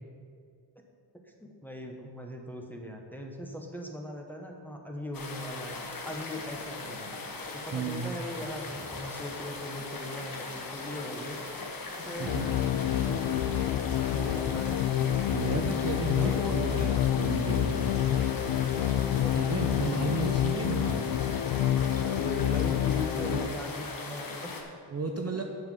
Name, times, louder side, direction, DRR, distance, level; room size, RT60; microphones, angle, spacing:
voice 1, 1.2-7.1 7.5-11.4 12.0-13.4 14.0-14.9 16.2-16.6 19.2-19.6 22.0-24.5 25.3-25.4, left 1 dB, 5° left, 1 dB, 0.9 m, -40 dB
sound 1, 5.1-24.6, left 3 dB, 50° left, 1.2 m, -40 dB
voice 2, 7.7-8.1 12.2-12.5 15.3-17.9 19.3-21.1 23.1-23.6 24.9-25.4, right 4 dB, 35° right, 3 dB, 0.6 m, -33 dB
sound 2, 8.3-9.7 12.0-14.0 16.1-18.3 20.5-22.1, left 2 dB, 30° left, 0.9 m, -52 dB
sound 3, 12.3-23.5, left 11 dB, 85° left, 0.6 m, -28 dB
7.8 x 7.3 x 5.4 m, 2.3 s
wide cardioid pair, 125°, 45 cm